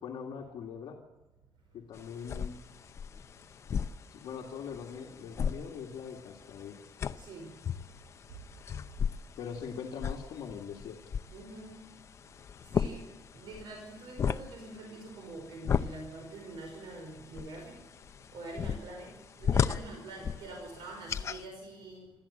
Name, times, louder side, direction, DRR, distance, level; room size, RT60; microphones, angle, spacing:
voice 1, 0.0-1.0 1.7-2.6 4.1-6.8 9.4-11.0, left 6 dB, 60° left, 0 dB, 2.3 m, -42 dB
sound 1, 1.9-21.4, left 7 dB, 35° left, 0.6 m, -36 dB
voice 2, 7.2-7.6 11.3-12.0 12.7-17.8 18.3-22.1, right 2 dB, 65° right, 2 dB, 5.3 m, -45 dB
26.5 x 13.5 x 8.7 m, 1.1 s
cardioid pair, 180°, 9 cm